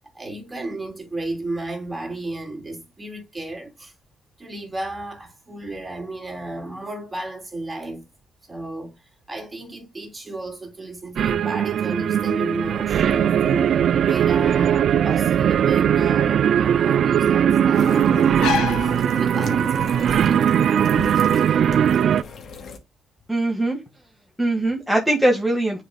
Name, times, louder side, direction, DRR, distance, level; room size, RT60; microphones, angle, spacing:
voice 1, 0.1-3.9 4.4-8.0 8.4-9.0 9.3-13.7 14.0-18.4 18.8-20.2, right 2 dB, 15° right, 3.1 m, -33 dB
sound 1, 11.2-22.2, right 9 dB, 65° right, 0.3 m, -19 dB
sound 2, 12.8-19.8, left 8 dB, 85° left, 1.2 m, -33 dB
sound 3, 17.7-22.8, left 4 dB, 55° left, 2.3 m, -37 dB
voice 2, 23.3-23.8 24.4-25.8, right 1 dB, ahead, 1.7 m, -21 dB
10.0 x 5.1 x 2.3 m
cardioid pair, 90°, 0 cm